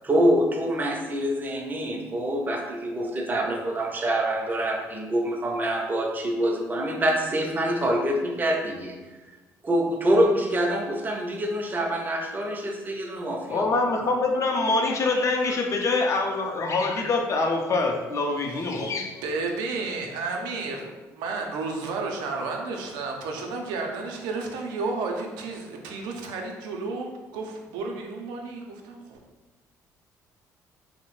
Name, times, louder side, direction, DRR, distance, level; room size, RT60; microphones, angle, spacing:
voice 1, 0.0-9.0 9.6-13.7, right 1 dB, 25° right, 1 dB, 0.5 m, -25 dB
voice 2, 13.5-19.2, left 3 dB, 45° left, 2 dB, 0.5 m, -25 dB
voice 3, 18.6-29.2, right 3 dB, 85° right, 2 dB, 0.4 m, -32 dB
2.7 x 2.0 x 3.0 m, 1.2 s
supercardioid pair, 75°, 7 cm